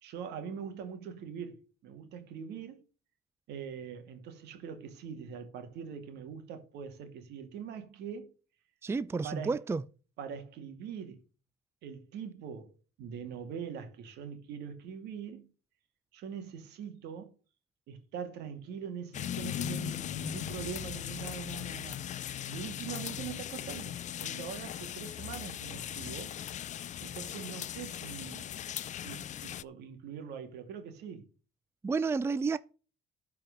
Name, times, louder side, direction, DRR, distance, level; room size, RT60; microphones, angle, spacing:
voice 1, 0.0-2.8 3.5-8.3 9.2-9.6 10.2-11.2 11.8-12.7 13.0-15.5 16.1-17.3 17.9-26.3 27.0-28.6 29.0-31.3, right 7 dB, 80° right, 2.3 m, -43 dB
voice 2, 8.8-9.8 31.8-32.6, right 4 dB, 15° right, 0.4 m, -30 dB
sound 1, 19.1-29.6, left 11 dB, 45° left, 0.5 m, -39 dB
12.5 x 4.8 x 6.5 m
cardioid pair, 110°, 17 cm